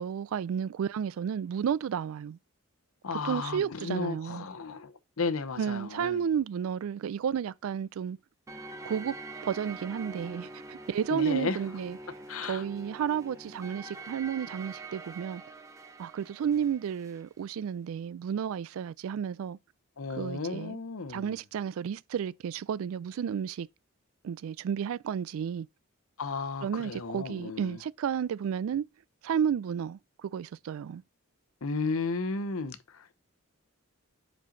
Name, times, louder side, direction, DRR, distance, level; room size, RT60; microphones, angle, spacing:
voice 1, 0.0-2.4 3.1-4.5 5.6-8.2 8.8-9.2 9.4-12.0 12.4-15.4 16.0-19.6 20.2-20.8 21.1-23.7 24.2-25.7 26.6-28.9 29.2-31.0, right 8 dB, 75° right, 0.3 m, -32 dB
voice 2, 3.0-6.3 11.1-11.6 12.3-12.6 20.0-21.4 26.2-27.8 31.6-33.1, left 4 dB, 75° left, 0.8 m, -34 dB
sound 1, 8.5-17.3, right 3 dB, 15° right, 0.7 m, -45 dB
4.9 x 4.5 x 5.2 m
head